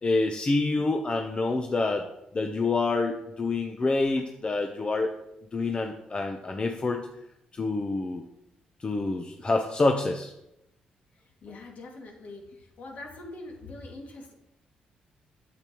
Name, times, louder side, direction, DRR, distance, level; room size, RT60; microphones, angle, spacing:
voice 1, 0.0-2.1 2.3-5.2 5.5-7.0 7.5-8.2 8.8-10.3, left 3 dB, 35° left, 4 dB, 0.8 m, -27 dB
voice 2, 11.2-14.3, left 2 dB, 60° left, 0 dB, 2.3 m, -43 dB
8.8 x 7.7 x 3.1 m, 0.84 s
supercardioid pair, 65°, 3 cm